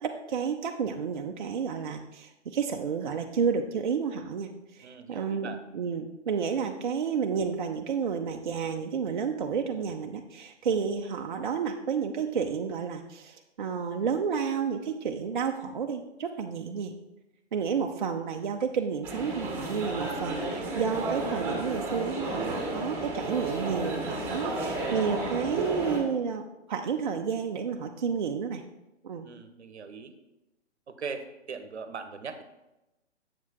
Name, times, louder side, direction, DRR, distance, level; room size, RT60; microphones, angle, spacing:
voice 1, 0.0-16.9 17.5-28.6 29.0-29.3, right 6 dB, 45° right, 4 dB, 0.5 m, -31 dB
voice 2, 4.8-5.6 29.2-30.1 30.9-32.4, right 5 dB, 65° right, 10 dB, 0.8 m, -40 dB
sound 1, 19.0-26.0, right 2 dB, 5° right, 1.6 m, -32 dB
7.3 x 7.2 x 2.9 m, 0.97 s
figure-of-eight pair, 130°, 35 cm